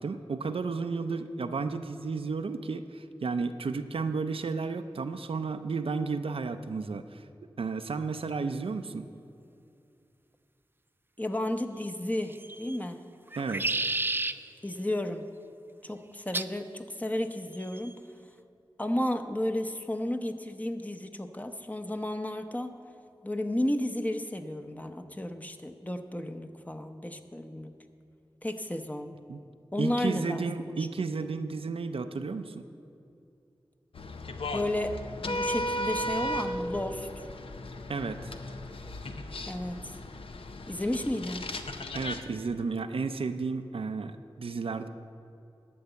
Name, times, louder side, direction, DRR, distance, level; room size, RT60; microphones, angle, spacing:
voice 1, 0.0-7.2 7.6-9.0 13.3-13.8 29.3-29.4 29.8-32.6 37.9-38.3 41.9-44.9, right 4 dB, 80° right, 8 dB, 0.5 m, -33 dB
voice 2, 11.2-13.0 14.6-15.3 15.8-18.0 18.8-22.7 23.2-27.7 28.4-29.2 29.7-30.8 34.5-37.1 39.5-39.9 40.7-41.5, left 1 dB, 15° left, 6 dB, 0.8 m, -33 dB
sound 1, 12.3-12.8 13.3-14.4 16.3-16.6 17.5-17.9, right 2 dB, 20° right, 0.4 m, -31 dB
sound 2, 33.9-42.2, equal, 75° left, 0.6 m, -36 dB
12.0 x 5.5 x 8.0 m, 2.6 s
cardioid pair, 45°, 9 cm